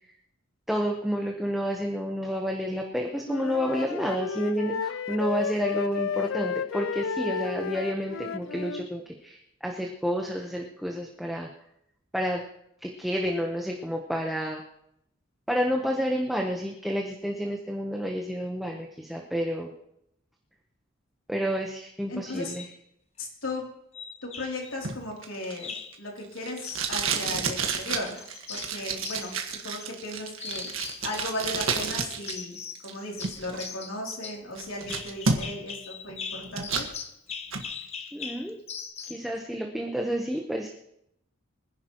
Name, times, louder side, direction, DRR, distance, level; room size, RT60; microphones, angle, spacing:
voice 1, 0.7-11.5 12.1-12.4 12.8-14.6 15.5-19.7 21.3-22.7 38.1-38.6 39.0-40.7, equal, ahead, 0 dB, 1.0 m, -30 dB
Wind instrument woodwind instrument, 3.2-8.9, left 6 dB, 65° left, 0.4 m, -32 dB
voice 2, 22.1-22.6 23.2-23.7 24.2-30.7 31.0-36.8, left 1 dB, 85° left, -1 dB, 3.1 m, -36 dB
sound 1, 22.5-22.8 23.9-24.7 25.6-26.0 26.6-27.8 28.2-30.1 30.4-31.7 32.3-32.9 33.2-39.3, left 6 dB, 30° left, 0.7 m, -40 dB
Packing tape duct tape, 24.8-32.4 32.6-33.7 34.1-34.2 34.6-35.7 36.1-36.9 37.3-37.7, right 5 dB, 80° right, 1.6 m, -31 dB
24.5 x 10.5 x 3.0 m, 0.78 s
head